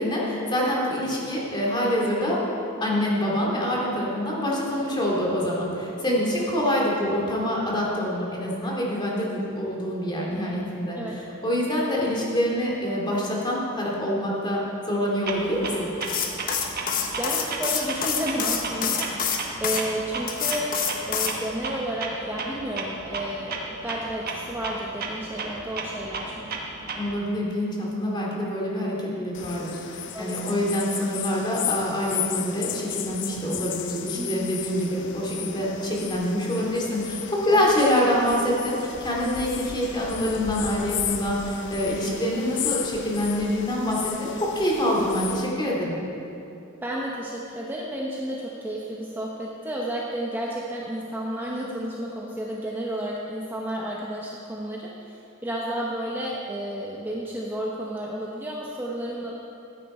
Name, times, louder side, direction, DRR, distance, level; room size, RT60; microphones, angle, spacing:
voice 1, 0.0-2.4 2.8-14.6 14.9-15.9 26.9-46.0, equal, 25° left, -4 dB, 2.5 m, -26 dB
voice 2, 6.1-6.4 10.9-11.2 17.2-19.1 19.6-20.7 21.1-26.5 30.1-30.6 34.2-34.5 37.5-37.7 46.8-59.3, right 1 dB, 10° right, -4 dB, 1.0 m, -32 dB
Clock, 15.3-27.3, right 3 dB, 50° right, 1.3 m, -35 dB
sound 1, 16.0-19.8 20.3-21.4, left 6 dB, 45° left, 1.0 m, -27 dB
sound 2, 29.3-45.5, left 9 dB, 60° left, 0.6 m, -34 dB
14.5 x 9.9 x 4.3 m, 2.8 s
head